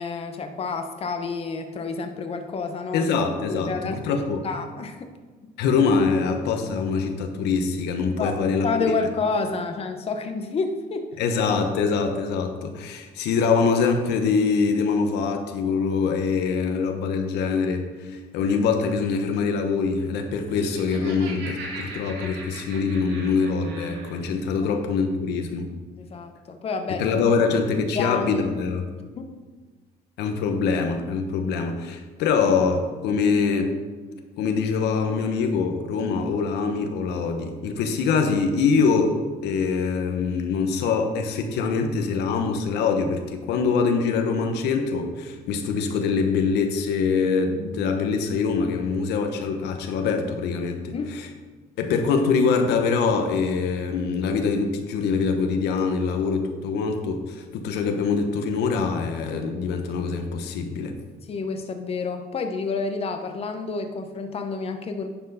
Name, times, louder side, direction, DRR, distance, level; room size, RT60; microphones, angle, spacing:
voice 1, 0.0-3.1 3.5-5.1 5.4-5.5 8.0-11.1 24.6-24.8 26.0-27.1 27.9-28.5 29.2-29.3 50.9-51.1 61.3-65.1, left 4 dB, 35° left, 7 dB, 0.8 m, -29 dB
voice 2, 2.9-4.4 5.6-8.7 11.2-25.7 26.9-28.8 30.2-33.7 34.4-39.2 39.4-51.3 51.8-60.9, left 5 dB, 85° left, 5 dB, 1.0 m, -24 dB
Laughter, 20.4-24.2, right 3 dB, 85° right, 2.1 m, -39 dB
10.5 x 4.5 x 5.5 m, 1.4 s
cardioid pair, 110°, 17 cm